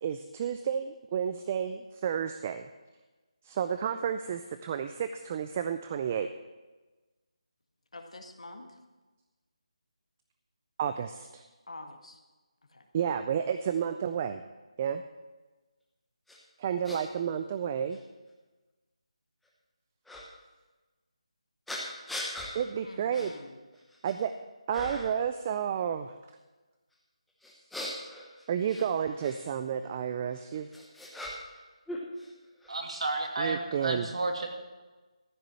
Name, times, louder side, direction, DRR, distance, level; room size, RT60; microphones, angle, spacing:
voice 1, 0.0-2.7 3.4-6.3 10.8-11.4 12.9-14.4 14.8-15.0 16.6-18.0 22.5-23.3 24.0-24.3 24.7-26.1 28.5-30.7 33.4-34.1, right 8 dB, 20° right, 10 dB, 0.3 m, -31 dB
voice 2, 7.9-8.8 11.7-12.2 12.7-12.9 22.8-23.6, left 2 dB, 70° left, 5 dB, 1.7 m, -46 dB
sound 1, 16.3-16.4 16.8-17.0 17.9-18.0 20.0-20.2 21.7-22.5 23.1-23.3 23.7-24.3 24.7-25.2 27.4-29.4 30.3-31.6 31.9-32.7, left 1 dB, ahead, 0.9 m, -40 dB
voice 3, 32.7-34.5, right 2 dB, 65° right, 3 dB, 2.3 m, -32 dB
14.0 x 6.5 x 7.5 m, 1.2 s
figure-of-eight pair, 170°, 3 cm